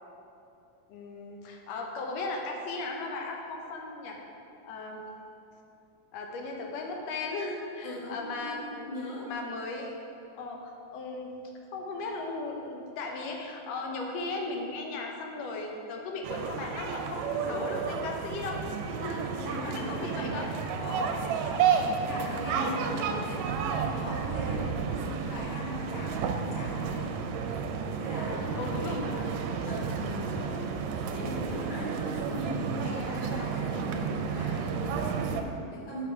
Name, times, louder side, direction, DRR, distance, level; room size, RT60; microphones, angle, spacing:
voice 1, 0.9-4.2 4.6-5.0 6.1-10.0 10.4-10.6 10.9-18.6 19.0-19.3 19.7-20.5 21.4-21.9 22.5-22.7 24.4-24.6 28.3-29.0 35.6-35.7, left 3 dB, 75° left, 1 dB, 1.8 m, -37 dB
voice 2, 7.8-9.3 19.1-20.5 20.8-27.1 28.0-28.5 28.8-29.3 29.6-35.4 35.7-36.0, left 1 dB, 40° left, -6 dB, 0.9 m, -39 dB
sound 1, 16.2-35.4, right 6 dB, 80° right, 1.7 m, -32 dB
6.9 x 5.0 x 4.6 m, 2.7 s
omnidirectional pair, 3.3 m